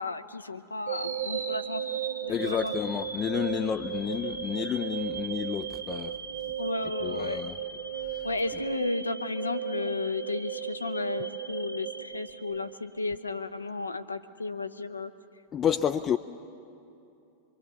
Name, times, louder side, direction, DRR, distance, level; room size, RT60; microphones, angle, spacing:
voice 1, 0.0-1.8 2.2-2.7 6.6-7.4 8.2-15.1, left 2 dB, 80° left, 9 dB, 0.8 m, -33 dB
sound 1, 0.9-13.0, right 8 dB, 85° right, 1.9 m, -36 dB
voice 2, 2.3-6.2 7.0-7.5 15.5-16.2, left 8 dB, 25° left, 7 dB, 0.5 m, -30 dB
25.0 x 24.0 x 7.1 m, 2.7 s
figure-of-eight pair, 90°, 0 cm